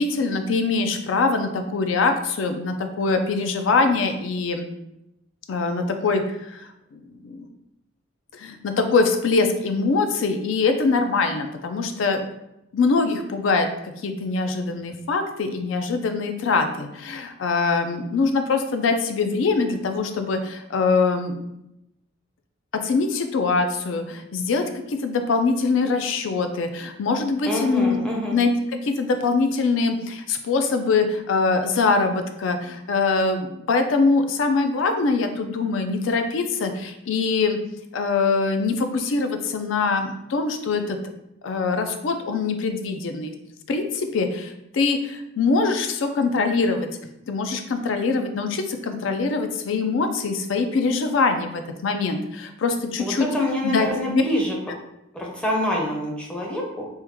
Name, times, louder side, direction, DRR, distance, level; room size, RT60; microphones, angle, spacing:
voice 1, 0.0-4.7 5.5-7.5 8.3-12.3 12.7-13.7 14.0-21.4 22.7-28.5 28.8-37.6 37.9-41.0 41.4-43.4 43.7-46.9 47.3-53.3 53.6-54.2, left 4 dB, 70° left, 6 dB, 0.4 m, -23 dB
voice 2, 27.5-28.4 53.0-54.6 55.1-56.9, left 1 dB, 5° left, -2 dB, 0.5 m, -26 dB
3.5 x 2.2 x 2.9 m, 0.85 s
head